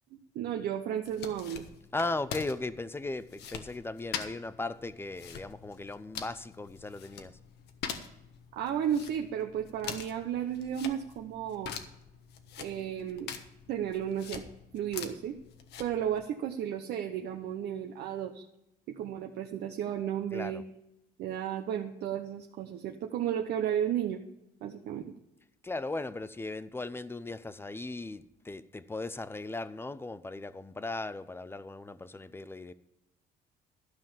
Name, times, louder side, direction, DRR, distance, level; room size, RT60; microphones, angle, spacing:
voice 1, 0.3-1.6 8.5-11.7 12.6-13.3 13.7-14.4 14.7-15.4 15.8-18.4 18.9-20.6 21.2-24.2 24.6-25.2, right 9 dB, 70° right, 0.9 m, -33 dB
sound 1, 1.0-16.3, left 7 dB, 75° left, 1.3 m, -44 dB
voice 2, 1.9-7.4 20.3-20.6 25.6-32.7, left 2 dB, 15° left, 0.6 m, -37 dB
12.5 x 5.7 x 7.2 m
cardioid pair, 110°, 17 cm